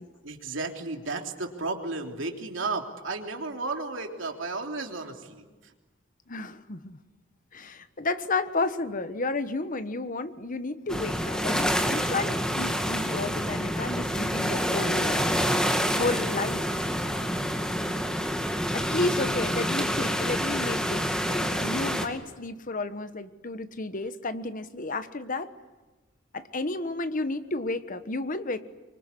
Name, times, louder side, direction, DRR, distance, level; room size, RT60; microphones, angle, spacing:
voice 1, 0.2-5.7, right 3 dB, 70° right, 3 dB, 3.3 m, -33 dB
voice 2, 6.3-7.0 7.5-15.6 16.0-16.8 18.7-25.5 26.3-28.6, left 3 dB, 45° left, 11 dB, 1.3 m, -32 dB
sound 1, 10.9-22.1, equal, 5° left, 2.2 m, -27 dB
25.0 x 24.5 x 9.8 m, 1.2 s
head